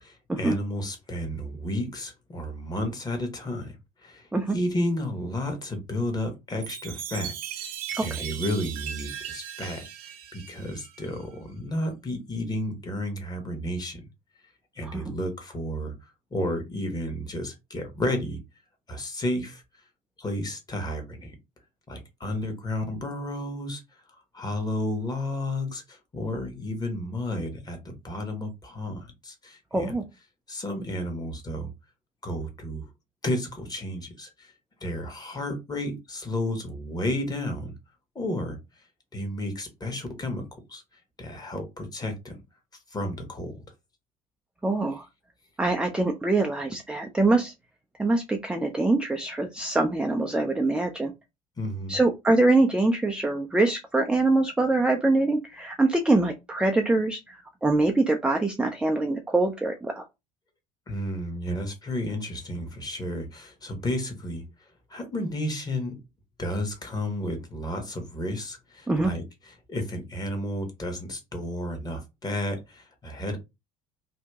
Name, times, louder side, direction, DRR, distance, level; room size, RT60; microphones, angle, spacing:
voice 1, 0.0-3.8 4.0-7.3 7.6-7.7 8.0-9.9 10.3-14.0 14.7-15.9 16.3-18.4 18.9-19.6 20.2-21.3 21.9-23.8 24.3-30.0 30.5-31.7 32.2-32.9 33.2-34.5 34.8-37.7 38.1-38.6 39.1-40.8 41.2-42.3 42.9-43.6 51.6-52.0 60.9-64.4 64.9-66.0 66.4-73.4, left 1 dB, 20° left, 1.2 m, -32 dB
Chime, 6.6-11.2, right 10 dB, 70° right, 0.7 m, -38 dB
voice 2, 29.7-30.0 44.6-45.1 45.6-47.5 48.0-51.1 51.9-60.1 68.9-69.1, right 2 dB, 5° right, 0.4 m, -24 dB
2.8 x 2.6 x 3.4 m
hypercardioid pair, 70°, 19 cm